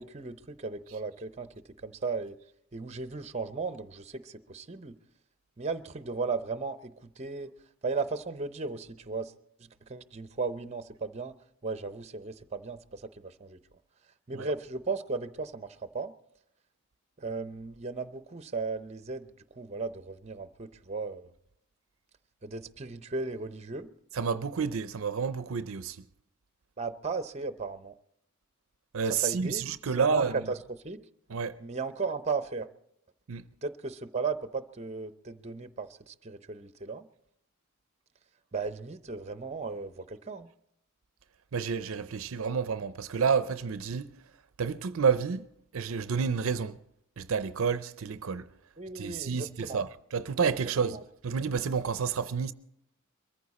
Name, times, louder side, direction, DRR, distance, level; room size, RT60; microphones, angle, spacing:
voice 1, 0.0-1.5 1.8-2.4 2.7-5.0 5.6-7.5 7.8-9.3 9.6-11.3 11.6-13.6 14.3-16.1 17.2-21.3 22.4-23.9 26.8-28.0 29.2-29.6 30.0-30.6 30.8-31.0 31.6-32.7 33.6-37.1 38.5-40.5 48.8-49.8 50.8-51.0, right 4 dB, 30° right, 0.7 m, -36 dB
voice 2, 24.1-26.0 28.9-30.4 31.3-31.6 33.3-33.4 41.5-44.1 44.6-45.5 45.7-46.8 47.2-48.5 48.9-52.5, right 6 dB, 70° right, 0.5 m, -29 dB
22.5 x 14.5 x 4.2 m
head